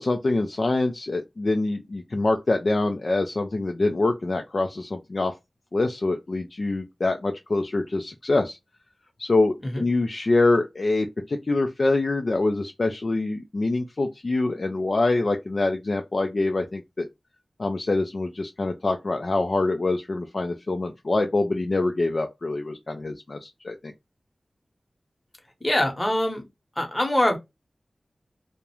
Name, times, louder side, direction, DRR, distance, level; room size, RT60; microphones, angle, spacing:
voice 1, 0.0-5.3 5.7-8.6 9.2-17.1 17.6-23.8, left 2 dB, 60° left, 0.3 m, -25 dB
voice 2, 25.6-26.4 26.8-27.4, left 1 dB, 25° left, 0.9 m, -23 dB
2.3 x 2.1 x 2.9 m
wide cardioid pair, 60°, 0 cm